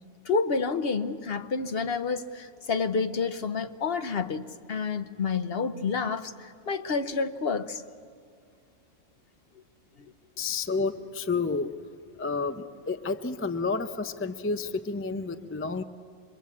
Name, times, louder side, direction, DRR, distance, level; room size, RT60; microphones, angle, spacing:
voice 1, 0.2-7.8, left 4 dB, 55° left, 1.0 m, -29 dB
voice 2, 10.4-11.9 12.2-15.8, left 4 dB, 15° left, 0.5 m, -30 dB
25.5 x 22.5 x 8.4 m
omnidirectional pair, 1.3 m